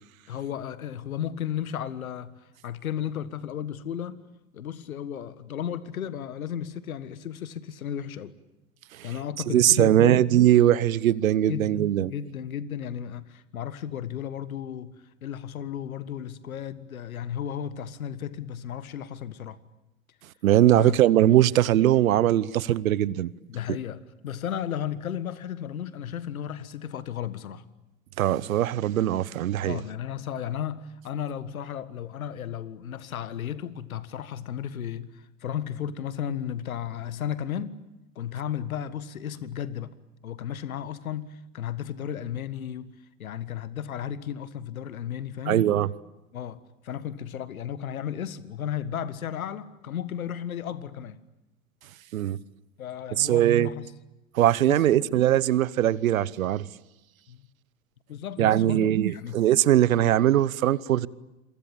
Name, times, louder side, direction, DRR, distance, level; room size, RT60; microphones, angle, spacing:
voice 1, 0.3-4.2 4.5-8.3 9.0-10.3 11.5-19.6 20.6-21.0 23.5-27.6 29.6-37.8 38.2-39.9 40.2-42.9 43.2-45.7 46.3-46.6 46.8-51.2 52.8-53.9 54.7-55.2 57.3-57.5 58.1-59.4, left 9 dB, 75° left, 1.7 m, -34 dB
voice 2, 9.5-12.1 20.4-23.3 28.2-29.8 45.5-45.9 52.1-52.4 53.2-53.7 54.3-56.6 58.4-61.1, right 12 dB, 70° right, 1.0 m, -21 dB
28.0 x 23.5 x 8.8 m
figure-of-eight pair, 85°, 42 cm